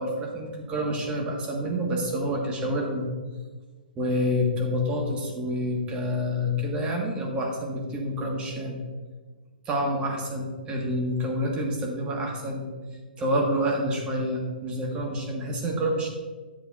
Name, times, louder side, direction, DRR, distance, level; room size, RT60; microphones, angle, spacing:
voice 1, 0.0-3.1 3.9-8.8 9.6-12.6 13.2-16.1, equal, 20° right, 0 dB, 1.4 m, -28 dB
8.9 x 7.9 x 2.5 m, 1.3 s
hypercardioid pair, 135°, 5 cm